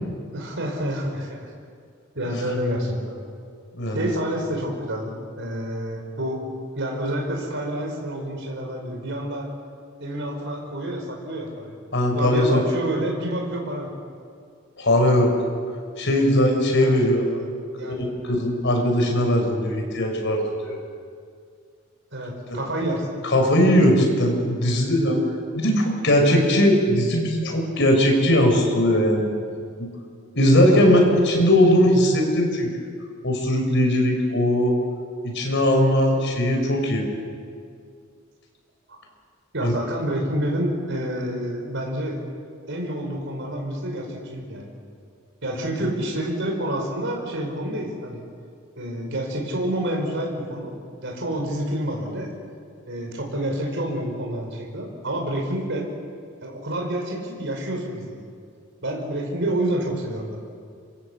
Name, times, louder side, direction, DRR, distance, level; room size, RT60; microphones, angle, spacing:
voice 1, 0.3-1.5 2.2-3.2 3.9-5.1 5.4-6.4 6.8-9.5 10.0-11.8 12.1-13.9 16.8-17.5 17.8-18.0 22.1-23.1 23.5-23.7 30.5-31.1 38.9-39.0 39.5-42.2 42.7-44.7 45.4-48.2 48.8-50.7 51.0-52.3 52.9-55.9 56.4-58.2 58.8-60.4, right 1 dB, 60° right, 1 dB, 5.3 m, -28 dB
voice 2, 3.7-4.1 11.9-12.6 14.8-15.3 16.0-17.3 17.8-20.8 22.5-22.6 23.2-25.2 25.5-29.3 29.8-29.9 30.3-32.7 33.2-34.8 35.3-37.0 39.6-39.7, left 1 dB, 60° left, 2 dB, 6.4 m, -19 dB
27.5 x 24.5 x 8.3 m, 2.2 s
head